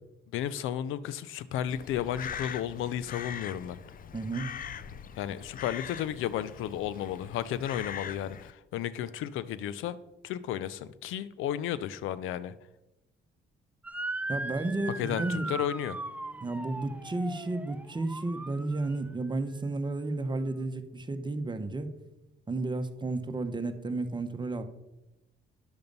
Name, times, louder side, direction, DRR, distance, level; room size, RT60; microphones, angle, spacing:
voice 1, 0.3-3.8 5.2-10.0 10.2-12.5 15.0-16.0, left 10 dB, 90° left, 16 dB, 0.5 m, -33 dB
Crow, 1.7-8.5, left 8 dB, 45° left, 0.5 m, -42 dB
voice 2, 4.1-4.5 14.3-15.5 16.4-21.9 22.5-24.6, right 2 dB, 25° right, 8 dB, 1.0 m, -32 dB
Motor vehicle (road) / Siren, 13.8-19.1, right 2 dB, 5° right, 0.5 m, -38 dB
10.5 x 6.8 x 5.3 m, 0.98 s
cardioid pair, 90°, 20 cm